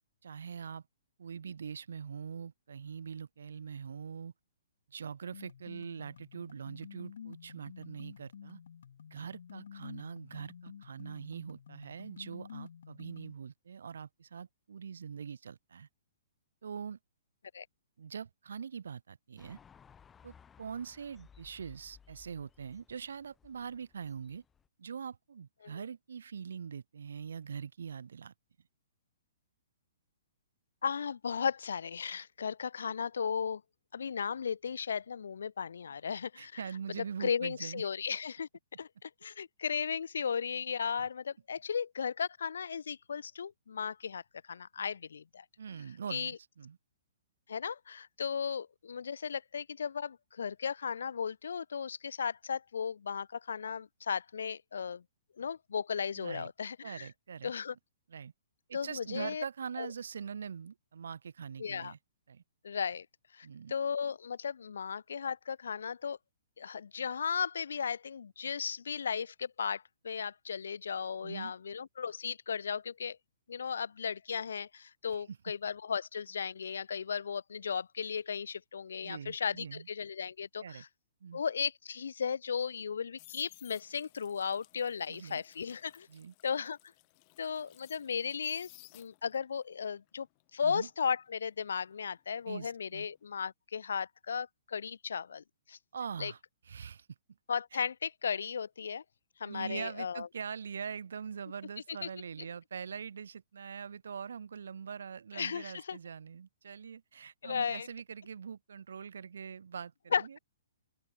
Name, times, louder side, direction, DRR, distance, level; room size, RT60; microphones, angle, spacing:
voice 1, 0.2-0.8 1.2-4.3 4.9-8.6 9.1-15.9 16.6-17.0 18.0-19.6 20.2-24.4 24.8-28.3 36.4-37.8 45.6-46.8 56.2-56.5 56.8-57.5 58.1-58.3 58.7-62.0 62.3-62.4 63.4-63.8 71.2-71.5 75.1-75.4 79.0-79.9 80.6-80.8 81.2-81.4 85.1-85.4 86.1-86.3 90.6-90.9 92.5-93.1 95.9-96.4 96.7-97.1 97.7-97.8 99.4-110.4, right 6 dB, 80° right, 2.1 m, -43 dB
sound 1, 5.3-13.3, left 8 dB, 65° left, 3.8 m, -50 dB
sound 2, 19.4-24.7, left 7 dB, 10° left, 0.8 m, -60 dB
voice 2, 30.8-33.6 33.9-36.6 37.0-38.5 38.8-44.2 44.5-45.4 46.1-46.4 47.5-55.0 55.4-57.1 57.4-57.7 58.7-59.4 59.8-59.9 61.6-61.9 62.6-63.1 63.3-66.2 66.6-73.2 73.5-80.9 81.3-86.1 86.4-86.8 87.4-90.3 90.5-95.8 96.2-96.3 97.5-99.0 99.4-100.3 102.0-102.1 105.3-106.0 107.4-107.9 110.1-110.4, left 6 dB, 85° left, 0.4 m, -36 dB
sound 3, 82.7-89.5 89.8-92.7 93.0-93.3, left 34 dB, 25° left, 2.3 m, -59 dB
open air
hypercardioid pair, 170°, 0 cm